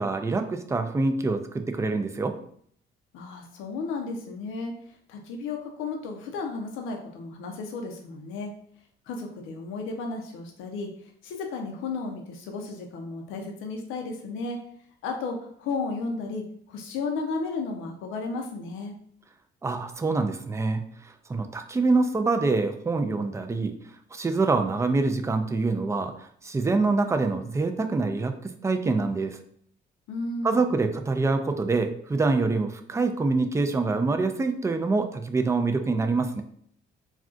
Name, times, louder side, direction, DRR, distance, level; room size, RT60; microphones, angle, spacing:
voice 1, 0.0-2.4 19.6-23.7 24.1-29.4 30.4-36.4, right 3 dB, 15° right, 7 dB, 0.3 m, -25 dB
voice 2, 3.1-8.5 9.1-14.6 15.0-18.9 30.1-30.7, left 3 dB, 85° left, 2 dB, 0.5 m, -34 dB
2.4 x 2.3 x 3.7 m, 0.62 s
cardioid pair, 90°, 20 cm